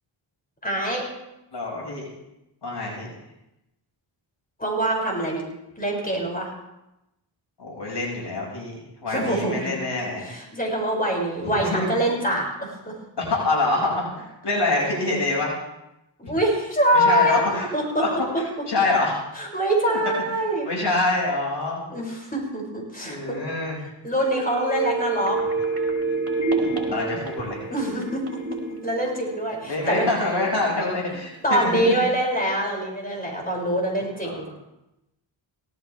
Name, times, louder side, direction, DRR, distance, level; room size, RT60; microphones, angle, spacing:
voice 1, 0.6-1.1 4.6-5.5 5.8-6.5 9.1-9.8 10.2-12.9 16.2-18.1 19.3-20.7 21.9-23.4 24.0-25.4 27.7-30.1 31.1-34.4, right 1 dB, 20° left, -1 dB, 6.5 m, -24 dB
voice 2, 1.5-2.1 2.6-3.1 7.6-10.3 11.5-11.9 13.2-15.6 16.2-16.3 16.9-17.7 18.0-18.1 18.7-19.2 19.9-20.0 20.6-21.9 23.0-23.8 26.6-27.6 29.7-32.0 34.2-34.3, left 2 dB, 60° left, -2 dB, 6.0 m, -26 dB
sound 1, 24.2-29.9 30.2-30.3, right 3 dB, 30° right, 5.3 m, -28 dB
18.5 x 14.5 x 3.5 m, 0.91 s
cardioid pair, 55°, 48 cm